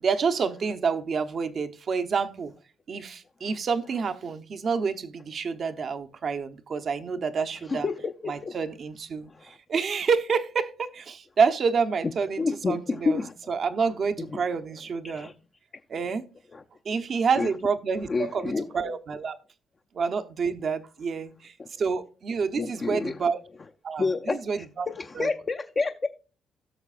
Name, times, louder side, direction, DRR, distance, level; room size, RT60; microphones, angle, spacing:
voice 1, 0.0-2.5 2.9-7.9 8.3-15.3 15.9-16.3 16.8-19.4 19.9-23.4 23.8-24.9 25.1-25.3, right 5 dB, 50° right, 0.9 m, -28 dB
voice 2, 7.7-8.5 9.3-9.4 12.4-13.3 14.2-14.4 15.0-15.3 16.5-16.6 17.4-17.5 18.1-18.7 21.6-21.7 22.6-23.2 24.0-26.1, left 4 dB, 35° left, 0.6 m, -29 dB
17.0 x 6.4 x 2.5 m
cardioid pair, 90°, 0 cm